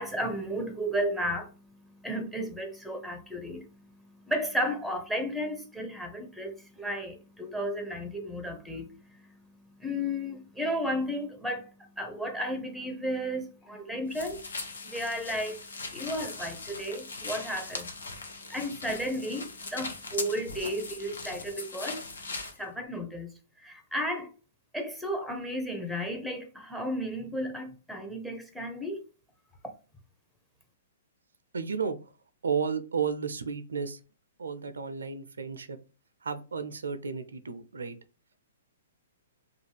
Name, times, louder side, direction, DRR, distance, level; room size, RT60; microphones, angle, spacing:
voice 1, 0.0-14.4 14.8-17.9 18.5-22.0 22.6-23.3 23.6-24.3 24.7-29.0, equal, ahead, 0.6 m, -34 dB
sound 1, 14.1-22.6, left 3 dB, 80° left, 0.7 m, -40 dB
voice 2, 31.5-32.0 32.4-34.0 34.4-35.8 36.2-38.0, right 6 dB, 80° right, 0.4 m, -32 dB
2.4 x 2.2 x 3.2 m
hypercardioid pair, 125°, 0 cm